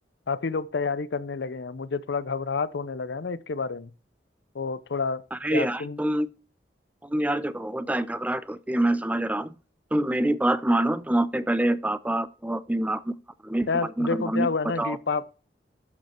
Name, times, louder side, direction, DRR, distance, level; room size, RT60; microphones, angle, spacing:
voice 1, 0.3-3.9 4.5-5.2 5.5-6.0 13.7-15.3, left 4 dB, 70° left, 0.6 m, -29 dB
voice 2, 5.3-6.3 7.0-9.5 9.9-13.1 13.4-13.7 14.0-14.5 14.8-15.0, right 1 dB, 10° right, 0.5 m, -26 dB
12.0 x 5.3 x 4.4 m
head